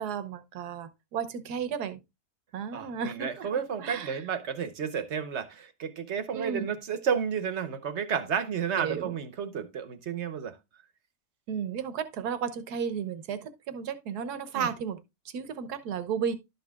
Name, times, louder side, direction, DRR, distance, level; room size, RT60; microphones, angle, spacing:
voice 1, 0.0-2.0 2.5-3.5 3.8-4.2 6.3-6.8 8.8-9.1 11.5-15.0 15.2-16.3, right 7 dB, 80° right, 1.5 m, -33 dB
voice 2, 2.7-10.6 14.5-14.7, right 7 dB, 50° right, 1.1 m, -32 dB
12.0 x 6.7 x 2.3 m
omnidirectional pair, 1.7 m